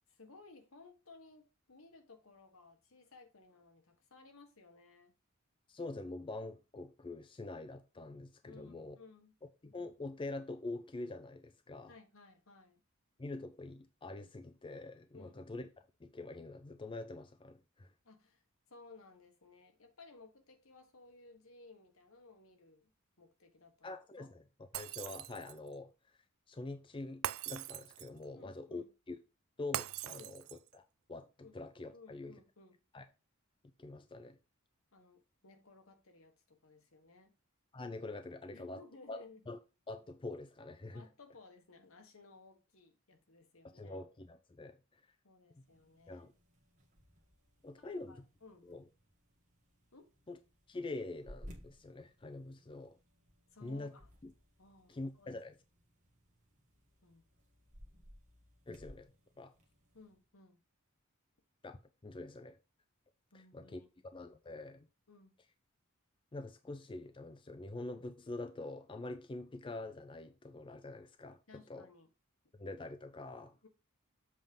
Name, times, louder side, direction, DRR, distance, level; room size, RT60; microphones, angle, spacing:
voice 1, 0.1-5.1 8.5-9.3 11.9-12.8 15.1-15.6 18.0-18.4 18.7-22.9 23.2-24.3 28.3-28.9 30.1-30.4 31.4-31.5 31.9-32.8 34.9-37.3 38.5-39.4 40.9-44.0 45.2-46.3 47.8-48.9 49.9-50.1 53.5-54.1 54.6-55.4 57.0-57.2 59.9-60.6 63.3-63.9 65.1-65.3 71.5-72.1 73.6-73.7, left 3 dB, 75° left, 1.4 m, -59 dB
voice 2, 5.7-9.0 9.6-11.9 13.2-15.7 16.0-17.9 23.8-24.4 24.7-25.9 26.5-29.2 29.6-30.8 31.1-32.3 32.9-33.0 33.8-34.4 37.7-38.8 39.1-39.6 39.9-41.1 43.6-44.8 46.1-46.3 47.6-48.2 48.6-48.8 50.3-50.4 50.7-52.9 53.6-53.9 54.2-54.3 54.9-55.5 58.7-59.1 59.4-59.5 61.6-62.6 63.5-63.8 64.1-64.9 66.3-71.4 71.7-71.9 72.6-73.6, left 2 dB, 25° left, 0.5 m, -45 dB
Shatter, 24.7-25.7 27.2-28.2 29.7-30.7, right 13 dB, 70° right, 0.3 m, -41 dB
sound 1, 45.5-60.2, equal, 35° right, 1.4 m, -60 dB
7.5 x 3.6 x 5.3 m
head